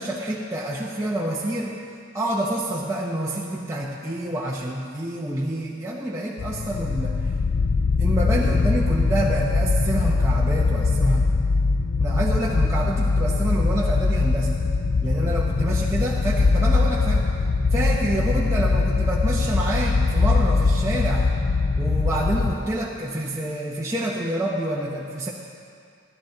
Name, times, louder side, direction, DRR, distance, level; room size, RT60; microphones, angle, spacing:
voice 1, 0.0-1.8 2.1-7.3 8.0-11.3 12.0-14.5 15.0-17.3 17.7-21.3 21.8-25.3, right 1 dB, 15° right, -5 dB, 0.7 m, -27 dB
sound 1, 6.4-22.5, left 3 dB, 55° left, 0.4 m, -22 dB
14.0 x 11.0 x 3.9 m, 2.3 s
head